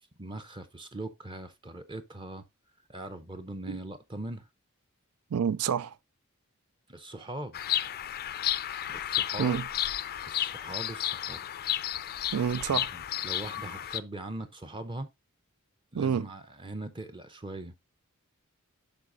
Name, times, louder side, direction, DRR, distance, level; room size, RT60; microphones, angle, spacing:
voice 1, 0.2-2.4 2.9-4.5 6.9-7.6 8.8-9.6 10.3-11.5 12.7-15.1 15.9-17.7, right 1 dB, 20° right, 0.7 m, -41 dB
voice 2, 5.3-6.0 9.4-9.7 12.3-12.9 15.9-16.3, right 7 dB, 85° right, 0.4 m, -28 dB
Bird vocalization bird call bird song, 7.5-14.0, left 12 dB, 45° left, 0.4 m, -32 dB
12.0 x 4.1 x 2.6 m
head